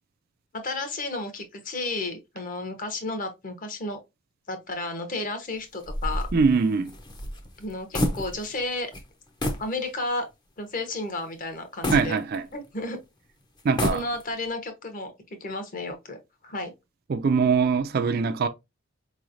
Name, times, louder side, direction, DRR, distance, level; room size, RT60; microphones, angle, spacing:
voice 1, 0.6-4.0 4.5-6.3 7.6-8.9 9.6-10.3 10.6-12.2 12.5-13.0 13.9-15.1 15.4-16.2 16.4-16.7, left 2 dB, 40° left, 0.9 m, -32 dB
sound 1, 5.8-8.7 8.9-9.1 9.4-9.7 10.2-10.3 11.8-12.8 13.6-14.5, left 1 dB, 20° left, 0.6 m, -30 dB
voice 2, 6.3-6.9 11.9-12.5 13.6-14.0 17.1-18.5, right 5 dB, 45° right, 0.3 m, -22 dB
4.7 x 3.1 x 2.5 m
head